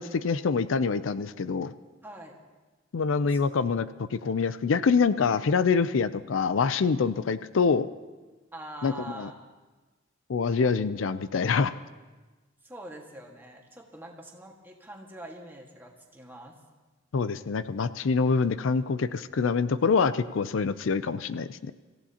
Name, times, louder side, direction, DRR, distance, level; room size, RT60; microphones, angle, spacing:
voice 1, 0.0-1.7 2.9-3.9 4.1-7.9 8.8-9.3 10.3-11.7 17.1-21.7, left 5 dB, 80° left, 14 dB, 0.5 m, -25 dB
voice 2, 2.0-2.4 3.1-3.4 8.5-9.3 12.6-16.5, right 1 dB, 10° right, 0 dB, 1.7 m, -44 dB
25.5 x 15.5 x 2.9 m, 1.3 s
head